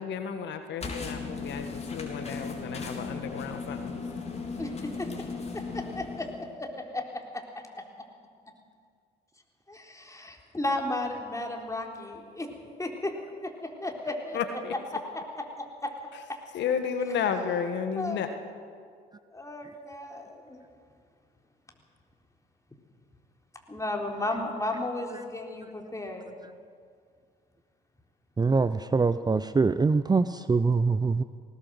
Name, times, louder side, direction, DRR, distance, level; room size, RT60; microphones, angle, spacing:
voice 1, 0.0-4.0 14.3-14.7 16.1-16.2 16.5-18.3, left 7 dB, 60° left, 8 dB, 1.6 m, -32 dB
sound 1, 0.8-6.6, left 4 dB, 30° left, 3.8 m, -37 dB
voice 2, 4.6-5.1 5.5-6.3 6.6-7.4 7.8-7.9 9.7-12.5 12.8-13.1 13.4-14.4 15.6-15.9 18.0-18.2 19.3-20.6 23.7-26.4, left 2 dB, 15° left, 2 dB, 3.8 m, -34 dB
voice 3, 28.4-31.2, right 4 dB, 20° right, 13 dB, 0.7 m, -24 dB
19.0 x 18.0 x 7.8 m, 2.2 s
hypercardioid pair, 55°, 20 cm